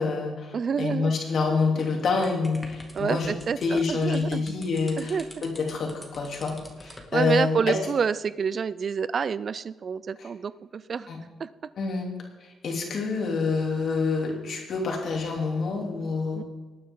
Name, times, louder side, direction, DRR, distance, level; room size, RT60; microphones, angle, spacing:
voice 1, 0.0-3.3 3.6-7.8 10.2-10.3 11.1-11.2 11.8-12.1 12.4-16.4, left 4 dB, 60° left, 1 dB, 3.1 m, -27 dB
voice 2, 0.5-1.1 2.9-4.4 5.0-5.3 7.1-11.1 11.4-11.5 16.3-16.4, right 6 dB, 45° right, 17 dB, 0.4 m, -28 dB
sound 1, 2.1-7.1, left 1 dB, 10° left, 2.3 m, -47 dB
19.0 x 9.4 x 3.8 m, 1.3 s
cardioid pair, 90°, 0 cm